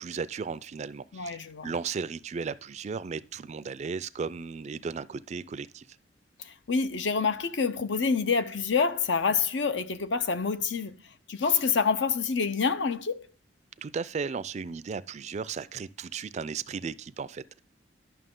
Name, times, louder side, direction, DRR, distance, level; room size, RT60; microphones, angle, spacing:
voice 1, 0.0-5.9 13.8-17.6, right 5 dB, 40° right, 0.3 m, -35 dB
voice 2, 1.1-1.7 6.4-11.0 11.3-13.3, left 5 dB, 75° left, 0.7 m, -27 dB
11.0 x 5.9 x 3.7 m
head